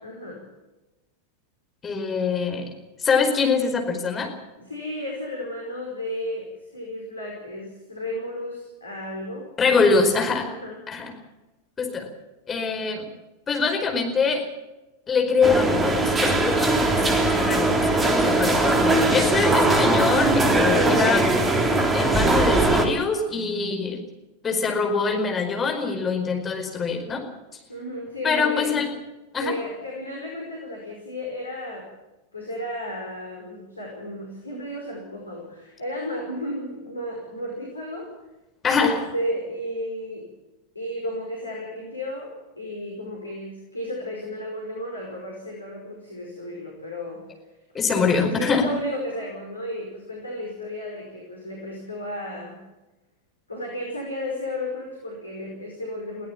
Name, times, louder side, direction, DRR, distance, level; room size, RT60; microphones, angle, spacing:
voice 1, 0.0-0.5 4.6-9.5 9.8-10.1 10.4-10.8 27.7-28.8 29.4-31.9 32.3-38.1 38.8-40.3 40.8-47.2 47.9-52.6 53.5-56.3, left 1 dB, 80° left, -1 dB, 5.2 m, -33 dB
voice 2, 1.8-2.7 3.0-4.3 9.6-10.5 10.9-11.1 11.8-12.1 12.5-13.1 13.5-14.5 15.1-21.3 21.9-24.0 24.4-27.2 28.2-28.9 29.3-29.5 38.6-39.0 47.7-48.7, left 4 dB, 20° left, 4 dB, 4.9 m, -24 dB
sound 1, 15.4-22.9, right 2 dB, 15° right, 3.3 m, -20 dB
22.0 x 17.0 x 7.4 m, 1.0 s
figure-of-eight pair, 90°, 0 cm